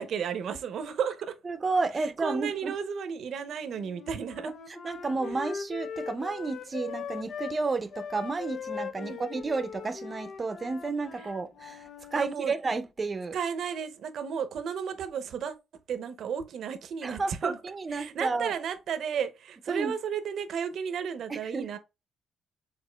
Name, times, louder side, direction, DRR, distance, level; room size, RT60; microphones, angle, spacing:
voice 1, 0.0-1.3 2.2-4.5 9.0-9.2 12.2-12.5 13.3-15.5 15.9-17.6 17.9-21.8, right 7 dB, 65° right, 0.7 m, -33 dB
voice 2, 1.4-2.7 4.4-13.4 17.0-18.5 19.7-19.9 21.3-21.8, right 3 dB, 30° right, 0.6 m, -32 dB
Wind instrument woodwind instrument, 3.7-7.6 7.9-12.2, left 6 dB, 60° left, 0.5 m, -40 dB
4.9 x 3.6 x 2.2 m
cardioid pair, 90°, 0 cm